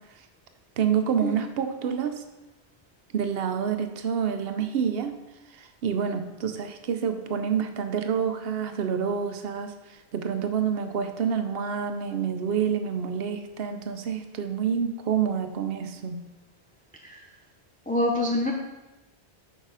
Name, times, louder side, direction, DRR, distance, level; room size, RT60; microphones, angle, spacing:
voice 1, 0.8-2.2 3.1-5.2 5.5-16.2, right 7 dB, 65° right, 8 dB, 0.9 m, -28 dB
voice 2, 17.9-18.5, left 1 dB, 10° left, 0 dB, 0.4 m, -25 dB
6.6 x 5.1 x 4.8 m, 1.0 s
omnidirectional pair, 1.1 m